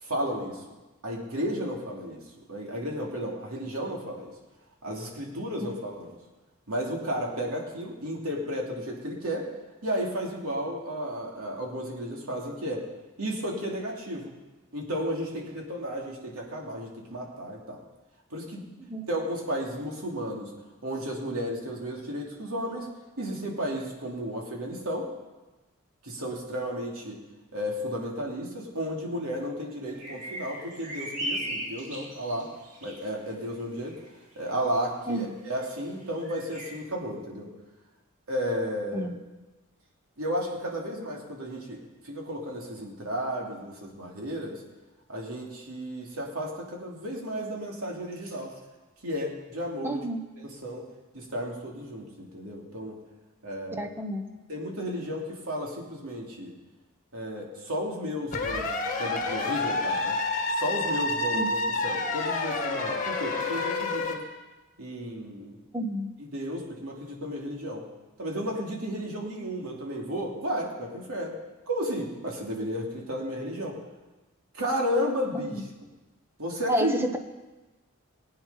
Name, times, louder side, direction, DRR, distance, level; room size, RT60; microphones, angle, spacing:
voice 1, 0.0-0.6 1.0-2.2 2.5-4.3 4.8-6.1 6.7-9.5 9.8-12.9 13.2-14.3 14.7-17.8 18.3-18.7 19.1-20.5 20.8-22.9 23.2-25.1 26.0-27.2 27.5-32.5 32.8-34.0 34.4-37.5 38.3-39.1 40.2-41.8 42.0-44.6 45.1-48.5 49.0-50.0 50.4-50.8 51.1-53.0 53.4-53.9 54.5-56.5 57.1-60.2 60.5-64.2 64.8-65.6 66.2-67.8 68.2-71.3 71.7-73.8 74.5-75.6 76.4-76.9, equal, 80° right, -1 dB, 2.8 m, -33 dB
sound 1, 29.9-33.0 33.9-34.1 34.5-34.6 35.5-35.6 36.0-36.7, right 1 dB, 35° right, 2.8 m, -37 dB
voice 2, 49.8-50.2 53.8-54.2 61.3-61.5 65.7-66.1 75.5-75.6 76.7-77.2, right 1 dB, 10° right, 6 dB, 0.9 m, -30 dB
sound 2, 58.3-64.2, left 2 dB, 35° left, 1.6 m, -28 dB
19.0 x 8.8 x 5.6 m, 1.1 s
head